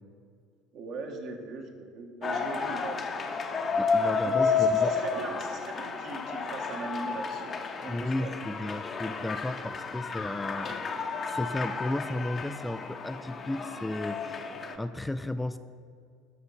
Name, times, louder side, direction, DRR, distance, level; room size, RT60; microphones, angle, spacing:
voice 1, 0.7-3.2 4.2-8.3, right 3 dB, 55° right, 2 dB, 1.6 m, -40 dB
sound 1, 2.2-14.8, left 5 dB, 35° left, 1.0 m, -31 dB
voice 2, 3.8-4.9 7.9-14.5 14.8-15.6, left 1 dB, 10° left, 10 dB, 0.4 m, -34 dB
13.5 x 5.6 x 5.6 m, 2.2 s
hypercardioid pair, 65°, 0 cm